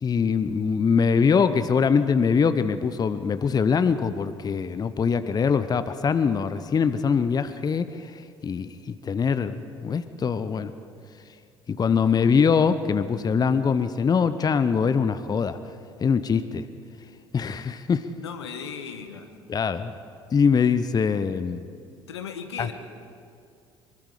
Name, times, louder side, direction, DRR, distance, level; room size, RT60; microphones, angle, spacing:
voice 1, 0.0-10.7 11.7-15.6 16.0-16.7 17.3-18.1 19.5-19.9 20.3-21.6 22.6-22.7, left 6 dB, 30° left, 12 dB, 0.8 m, -23 dB
voice 2, 18.2-19.3 22.1-22.7, left 7 dB, 75° left, 7 dB, 1.4 m, -36 dB
24.0 x 23.0 x 5.0 m, 2.3 s
figure-of-eight pair, 55°, 14 cm